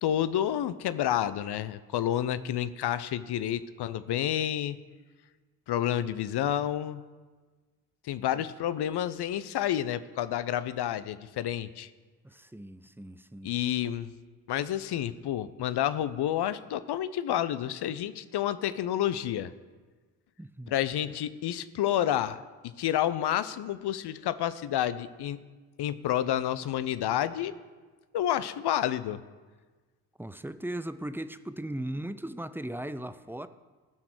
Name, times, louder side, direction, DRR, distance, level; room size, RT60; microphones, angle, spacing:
voice 1, 0.0-4.8 5.7-7.0 8.0-11.9 13.4-14.1 14.5-19.5 20.7-22.4 22.6-25.4 25.8-27.5 28.1-29.2, left 11 dB, 50° left, 15 dB, 0.8 m, -29 dB
voice 2, 12.2-13.5 20.4-20.7 30.2-33.5, right 1 dB, 5° right, 12 dB, 0.6 m, -38 dB
15.5 x 5.9 x 6.3 m, 1.4 s
hypercardioid pair, 40°, 49 cm